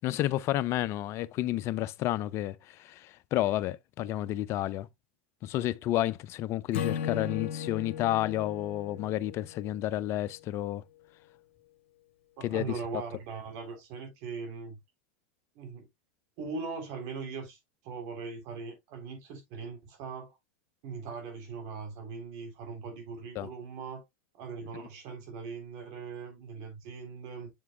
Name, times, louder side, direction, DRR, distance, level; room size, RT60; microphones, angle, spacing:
voice 1, 0.0-4.9 5.4-10.8 12.4-12.7 23.4-23.5, left 14 dB, 40° left, 0.4 m, -31 dB
Acoustic guitar / Strum, 6.7-10.0, left 8 dB, 80° left, 1.0 m, -36 dB
voice 2, 12.4-14.8 15.6-15.9 16.4-17.6 17.8-20.4 20.8-24.0 24.4-27.5, right 5 dB, 55° right, 3.5 m, -40 dB
7.2 x 6.8 x 2.2 m
hypercardioid pair, 110°, 7 cm